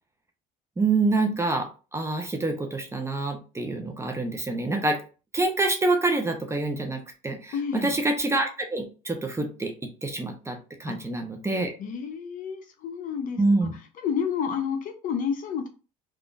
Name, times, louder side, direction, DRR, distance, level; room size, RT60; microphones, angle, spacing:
voice 1, 0.8-5.0 5.3-7.5 7.8-9.7 10.0-11.7 13.4-13.7, right 2 dB, 15° right, 4 dB, 0.7 m, -26 dB
voice 2, 7.5-8.0 10.9-11.0 11.8-15.7, left 7 dB, 50° left, 5 dB, 0.7 m, -30 dB
3.5 x 2.4 x 2.5 m, 0.34 s
hypercardioid pair, 75°, 17 cm